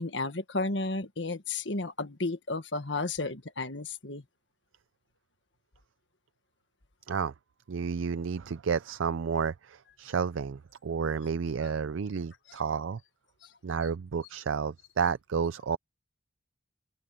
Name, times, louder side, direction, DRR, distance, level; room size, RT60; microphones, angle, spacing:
voice 1, 0.0-4.2, left 3 dB, 65° left, 1.6 m, -33 dB
voice 2, 7.7-13.0 13.6-15.8, right 6 dB, 85° right, 0.5 m, -31 dB
open air
head